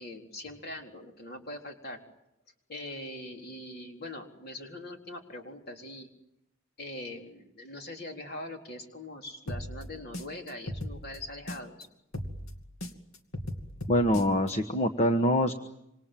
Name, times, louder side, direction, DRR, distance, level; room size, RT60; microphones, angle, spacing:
voice 1, 0.0-2.0 2.7-6.1 6.8-11.9, left 1 dB, 50° left, 2 dB, 3.9 m, -42 dB
sound 1, 9.5-11.8 12.1-14.5, left 1 dB, 85° left, 2.5 m, -38 dB
voice 2, 13.9-15.5, equal, 30° left, 6 dB, 1.2 m, -24 dB
27.0 x 26.0 x 7.6 m, 0.84 s
head